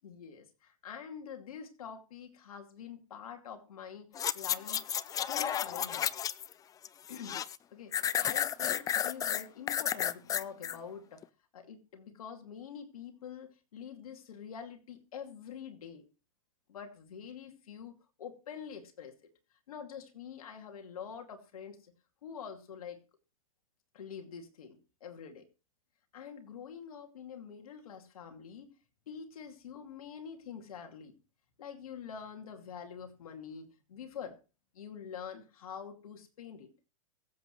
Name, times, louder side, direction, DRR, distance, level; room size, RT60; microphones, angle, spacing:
voice 1, 0.0-4.9 5.3-6.1 7.1-7.4 7.7-11.3 11.5-16.0 16.7-19.2 19.7-21.9 22.2-23.0 23.9-25.5 26.1-28.7 29.1-31.2 31.6-34.4 34.7-36.7, left 7 dB, 75° left, 2.5 m, -46 dB
sound 1, 4.1-6.5 6.8-7.6 7.9-10.8 11.2-11.3, left 9 dB, 20° left, 0.5 m, -32 dB
23.0 x 8.0 x 3.2 m
hypercardioid pair, 120°, 18 cm